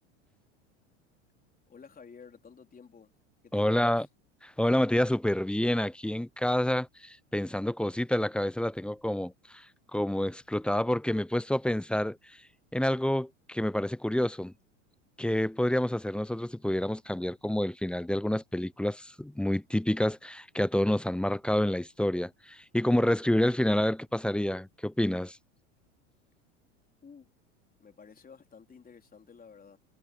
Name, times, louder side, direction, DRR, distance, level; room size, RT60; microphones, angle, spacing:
voice 1, 1.7-3.1 3.4-4.0 27.0-27.3 27.8-29.8, left 6 dB, 25° left, 4.0 m, -52 dB
voice 2, 3.5-4.1 4.4-9.7 9.9-12.2 12.7-14.5 15.2-25.4, left 1 dB, 5° left, 0.7 m, -28 dB
hypercardioid pair, 85°, 37 cm